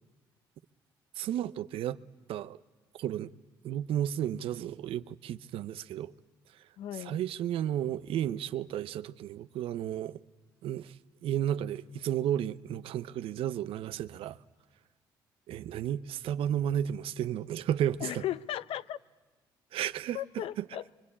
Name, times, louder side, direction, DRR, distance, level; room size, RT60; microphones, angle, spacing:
voice 1, 1.2-2.0 2.3-2.6 3.0-3.3 3.6-6.1 7.0-10.2 10.6-10.9 11.2-14.4 15.5-18.2 19.7-20.6, right 10 dB, 75° right, 0.8 m, -33 dB
voice 2, 6.8-7.2 18.0-19.0 20.1-20.9, left 12 dB, 75° left, 0.8 m, -36 dB
24.0 x 24.0 x 8.6 m
supercardioid pair, 65°, 10 cm